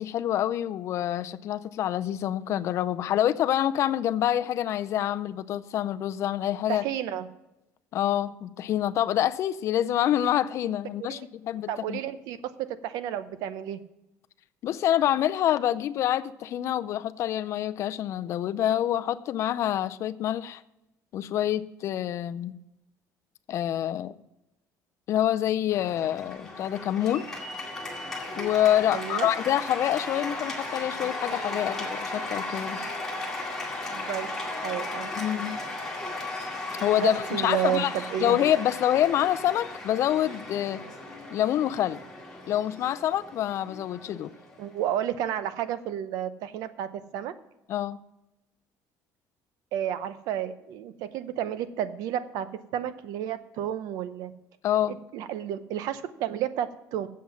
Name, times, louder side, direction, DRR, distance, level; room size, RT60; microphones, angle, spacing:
voice 1, 0.0-6.8 7.9-12.0 14.6-20.6 21.1-22.5 23.5-24.2 25.1-27.3 28.4-32.9 35.2-35.6 36.8-38.0 38.2-40.8 41.3-42.0 42.5-44.3 47.7-48.0 54.6-54.9, left 11 dB, 50° left, 0.4 m, -26 dB
voice 2, 6.7-7.3 11.1-11.3 11.7-12.4 12.8-13.8 28.9-29.3 33.9-34.3 34.6-35.2 37.0-38.4 44.6-47.3 49.7-52.5 52.7-54.3 54.9-57.1, right 10 dB, 75° right, 0.7 m, -31 dB
Cheering / Applause, 25.7-45.0, left 2 dB, 5° left, 2.1 m, -36 dB
7.6 x 7.4 x 7.0 m
cardioid pair, 160°, 6 cm